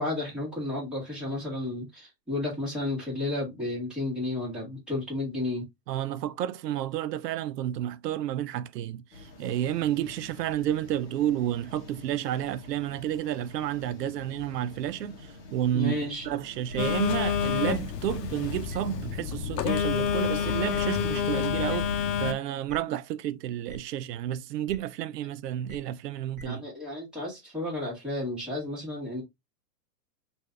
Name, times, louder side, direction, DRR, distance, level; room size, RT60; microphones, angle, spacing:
voice 1, 0.0-5.6 15.7-16.3 26.4-29.2, left 2 dB, ahead, 1.5 m, -32 dB
voice 2, 5.9-26.6, right 11 dB, 75° right, 0.6 m, -31 dB
sound 1, 9.1-21.5, left 2 dB, 35° left, 1.1 m, -48 dB
sound 2, 16.7-16.8 17.7-17.8 18.7-18.8 19.7-19.8 20.7-20.8 21.7-21.8 22.7-22.8 23.7-23.8 24.7-24.8 25.7-25.8 26.3-26.4, right 1 dB, 30° right, 1.3 m, -42 dB
Telephone, 16.8-22.3, left 8 dB, 80° left, 0.7 m, -28 dB
3.1 x 2.6 x 3.3 m
hypercardioid pair, 160°, 49 cm